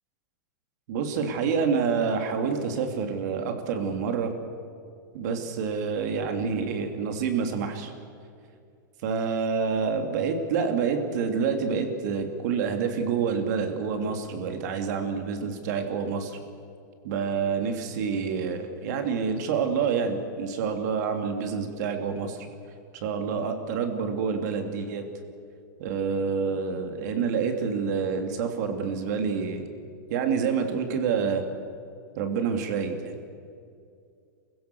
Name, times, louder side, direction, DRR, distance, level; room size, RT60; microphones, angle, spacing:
voice 1, 0.9-4.3 5.1-7.9 9.0-16.4 17.0-22.5 22.9-25.0 25.8-29.6 30.1-31.4 32.2-33.2, right 6 dB, 55° right, 5 dB, 2.9 m, -27 dB
28.5 x 16.0 x 7.1 m, 2.4 s
supercardioid pair, 155°, 11 cm